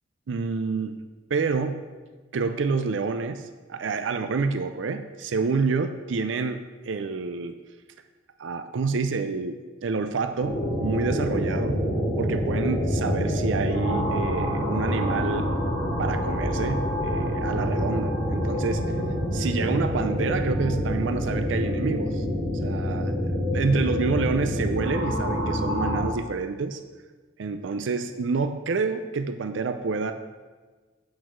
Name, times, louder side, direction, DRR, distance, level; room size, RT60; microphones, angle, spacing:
voice 1, 0.3-1.0 1.3-1.8 2.3-7.6 8.4-11.8 12.2-15.5 16.0-19.0 19.3-26.8 27.4-30.1, right 4 dB, 80° right, 9 dB, 0.5 m, -28 dB
sound 1, 10.4-26.0, equal, 25° left, 2.9 m, -26 dB
8.5 x 6.1 x 4.5 m, 1.4 s
head